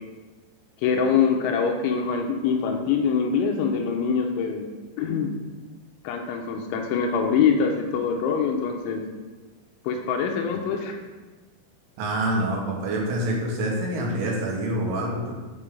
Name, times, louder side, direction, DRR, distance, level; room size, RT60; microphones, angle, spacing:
voice 1, 0.8-4.7 5.0-5.3 6.0-9.0 9.8-11.0, left 6 dB, 85° left, 3 dB, 3.0 m, -24 dB
voice 2, 12.0-15.3, right 1 dB, 80° right, -2 dB, 4.0 m, -26 dB
8.9 x 4.5 x 5.0 m, 1.3 s
omnidirectional pair, 5.6 m